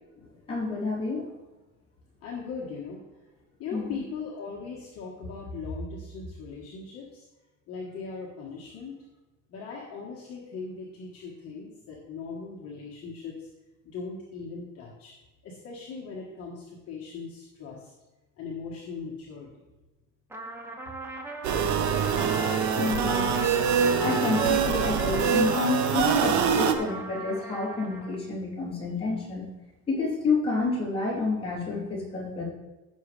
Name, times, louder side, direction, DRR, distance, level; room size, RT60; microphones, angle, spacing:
voice 1, 0.5-1.3 3.7-4.0 22.7-23.3 24.0-29.5 29.9-32.4, left 3 dB, 15° left, -6 dB, 3.3 m, -29 dB
voice 2, 2.2-3.0 3.6-7.2 7.7-8.9 9.5-13.5 13.8-15.1 15.4-17.9 18.4-19.5, left 4 dB, 45° left, -3 dB, 1.5 m, -39 dB
Trumpet, 20.3-28.2, right 1 dB, 5° right, 0.8 m, -37 dB
sound 1, 21.4-26.7, right 7 dB, 50° right, 1.0 m, -24 dB
15.5 x 6.3 x 3.3 m, 1.1 s
cardioid pair, 170°, 34 cm